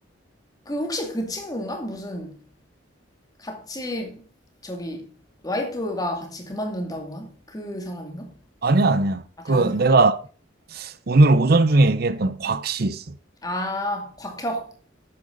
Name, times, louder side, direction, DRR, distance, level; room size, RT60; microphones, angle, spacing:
voice 1, 0.7-2.4 3.4-4.2 4.6-5.1 5.4-8.3 9.5-9.8 13.4-14.7, left 1 dB, 20° left, 2.3 m, -30 dB
voice 2, 8.6-10.2 10.7-13.0, right 2 dB, 55° right, 0.6 m, -19 dB
11.5 x 8.7 x 3.9 m
head